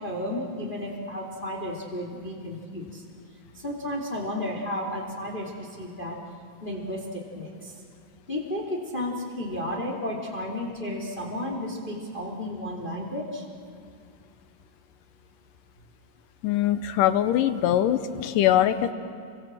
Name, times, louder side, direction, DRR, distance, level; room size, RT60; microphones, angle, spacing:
voice 1, 0.0-2.9 3.6-6.2 6.6-7.0 7.3-7.5 8.3-13.4, left 1 dB, 15° left, -1 dB, 2.6 m, -32 dB
voice 2, 16.4-18.9, left 11 dB, 80° left, 11 dB, 2.4 m, -22 dB
30.0 x 24.5 x 7.5 m, 2.3 s
omnidirectional pair, 3.9 m